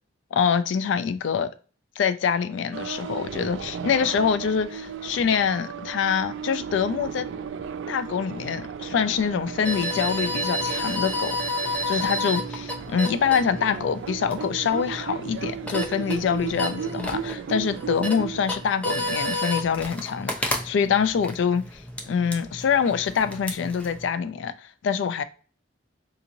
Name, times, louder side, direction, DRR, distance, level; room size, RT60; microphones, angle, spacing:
voice 1, 0.3-1.5 2.0-7.3 7.9-11.4 11.9-25.2, left 7 dB, 70° left, 0.3 m, -25 dB
sound 1, 2.7-18.7, right 7 dB, 75° right, 0.3 m, -35 dB
sound 2, 9.6-24.1, left 1 dB, 5° left, 0.4 m, -31 dB
3.7 x 2.9 x 2.6 m
head